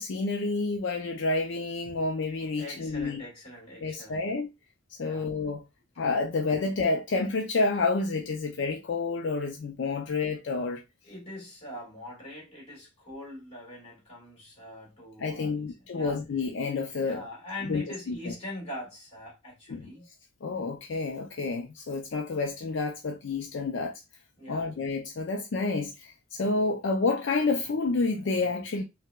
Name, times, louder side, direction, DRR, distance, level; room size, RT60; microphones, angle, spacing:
voice 1, 0.0-3.2 3.8-4.5 5.0-5.6 6.0-10.8 15.2-17.2 17.7-18.3 19.7-19.9 20.4-23.9 24.5-28.8, left 3 dB, 75° left, 0.4 m, -29 dB
voice 2, 2.6-4.3 5.0-5.4 11.0-16.2 17.0-20.0 24.4-24.8, left 1 dB, 35° left, 1.9 m, -42 dB
4.4 x 2.1 x 2.2 m
head